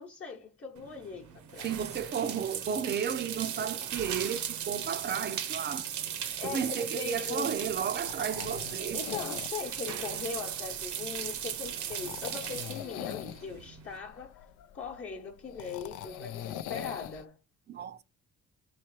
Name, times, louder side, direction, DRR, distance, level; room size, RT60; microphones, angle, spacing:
voice 1, 0.0-1.7 6.4-7.6 8.9-14.4 14.7-17.4, left 5 dB, 40° left, 1.0 m, -40 dB
sound 1, 0.8-14.0, right 9 dB, 70° right, 0.8 m, -37 dB
voice 2, 1.6-5.9 6.4-9.0 17.7-18.0, right 7 dB, 35° right, 0.5 m, -33 dB
sound 2, 7.6-17.2, left 11 dB, 85° left, 0.5 m, -43 dB
3.2 x 3.1 x 4.6 m
cardioid pair, 90°, 30 cm